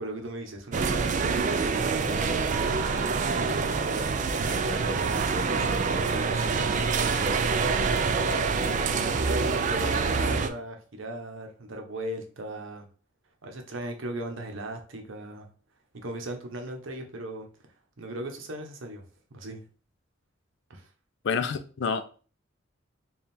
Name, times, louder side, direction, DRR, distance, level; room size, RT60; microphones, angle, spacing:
voice 1, 0.0-5.7 6.0-8.6 9.0-12.9 13.4-15.5 15.9-17.5 18.0-19.0 19.3-19.6 20.7-20.9, right 1 dB, 80° right, 0.8 m, -37 dB
sound 1, 0.7-10.5, right 4 dB, 40° right, 0.3 m, -26 dB
voice 2, 21.2-22.0, left 5 dB, 60° left, 0.4 m, -28 dB
3.5 x 2.3 x 4.1 m
head